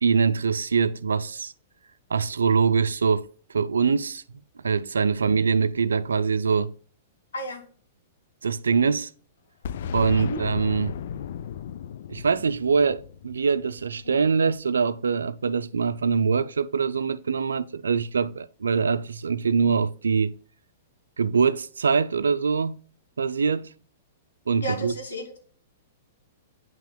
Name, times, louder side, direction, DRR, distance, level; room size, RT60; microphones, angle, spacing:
voice 1, 0.0-1.5 2.1-3.3 3.5-6.7 8.4-9.1 9.9-11.0 12.1-20.4 21.2-22.8 23.2-23.7 24.5-24.9, right 5 dB, 80° right, 0.4 m, -23 dB
voice 2, 7.3-7.6 10.2-10.4 14.0-14.2 24.6-25.4, equal, 80° left, 2.1 m, -33 dB
Boom, 9.6-14.3, left 8 dB, 65° left, 0.3 m, -35 dB
9.2 x 5.9 x 2.2 m
hypercardioid pair, 110°, 0 cm